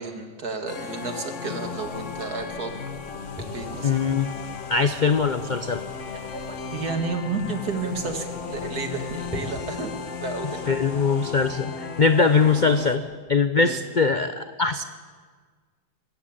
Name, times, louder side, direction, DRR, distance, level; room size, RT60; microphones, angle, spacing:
voice 1, 0.0-2.7 3.5-3.9 6.3-9.9 10.2-10.8 13.6-13.8, right 4 dB, 55° right, 5 dB, 2.5 m, -31 dB
sound 1, 0.7-13.0, left 5 dB, 45° left, 1.5 m, -35 dB
sound 2, 1.8-9.4, left 1 dB, ahead, 7.6 m, -46 dB
voice 2, 3.8-4.3 4.7-5.8 10.7-13.0 13.3-14.8, left 4 dB, 80° left, 9 dB, 0.4 m, -21 dB
23.0 x 14.0 x 8.7 m, 1.5 s
omnidirectional pair, 1.9 m